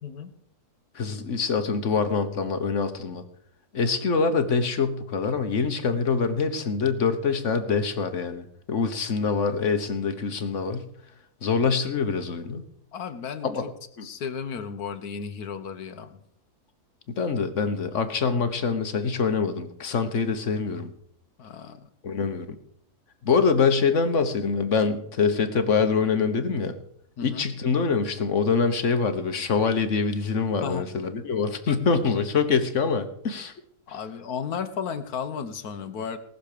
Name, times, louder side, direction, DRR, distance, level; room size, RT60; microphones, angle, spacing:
voice 1, 0.9-3.2 3.7-10.9 11.4-12.6 13.4-13.6 14.0-14.1 17.2-20.9 22.0-22.5 23.2-26.8 27.2-33.5, left 5 dB, 50° left, 9 dB, 1.4 m, -25 dB
voice 2, 12.9-13.7 14.0-16.2 21.4-21.9 27.2-27.5 30.6-30.9 33.9-36.2, left 6 dB, 70° left, 10 dB, 1.6 m, -34 dB
19.0 x 6.9 x 6.7 m, 0.69 s
omnidirectional pair, 1.7 m